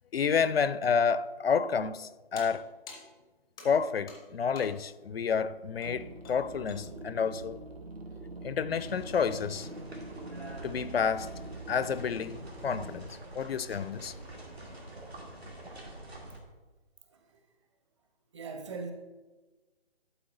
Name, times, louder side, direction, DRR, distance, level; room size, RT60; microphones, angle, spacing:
voice 1, 0.1-2.7 3.6-7.6 8.4-9.7 10.6-11.3 11.7-13.1 13.4-14.1, left 6 dB, 70° left, 0.5 m, -29 dB
sound 1, 2.4-5.0 5.8-6.0 6.2-6.9, left 3 dB, 5° left, 0.4 m, -50 dB
sound 2, 5.8-13.0, right 2 dB, 75° right, 1.1 m, -44 dB
sound 3, 8.7-16.4, right 1 dB, 90° right, 2.4 m, -46 dB
voice 2, 17.1-17.5 18.3-18.9, right 4 dB, 30° right, 0.8 m, -42 dB
11.5 x 4.2 x 3.9 m
figure-of-eight pair, 145°, 31 cm